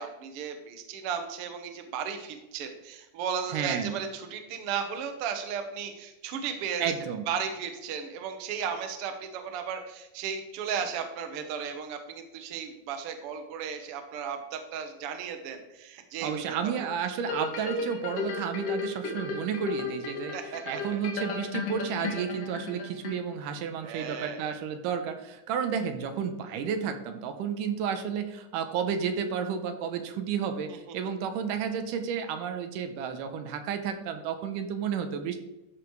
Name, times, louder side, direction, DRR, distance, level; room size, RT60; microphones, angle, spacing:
voice 1, 0.0-6.8 7.3-16.9 17.6-17.8 20.3-21.0 23.8-24.5, right 7 dB, 60° right, 6 dB, 1.6 m, -35 dB
voice 2, 3.5-4.0 6.8-7.3 16.2-20.4 20.7-35.4, right 7 dB, 85° right, 7 dB, 2.4 m, -32 dB
sound 1, 17.3-23.6 24.0-24.1, left 3 dB, 55° left, 2.0 m, -34 dB
13.0 x 5.0 x 4.6 m, 0.96 s
omnidirectional pair, 3.7 m